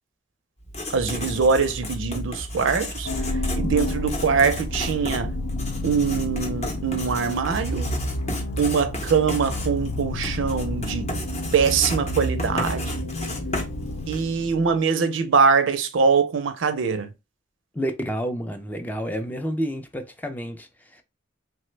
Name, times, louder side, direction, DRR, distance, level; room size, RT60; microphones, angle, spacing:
Writing, 0.6-14.4, left 1 dB, 35° left, 0.7 m, -33 dB
voice 1, 0.9-5.3 5.8-7.9 8.6-11.1 11.5-12.9 14.1-17.1, right 5 dB, 85° right, 0.5 m, -23 dB
sound 1, 3.0-14.9, left 1 dB, 90° left, 0.5 m, -30 dB
voice 2, 17.7-21.0, equal, 10° left, 0.3 m, -30 dB
3.1 x 2.1 x 3.1 m
head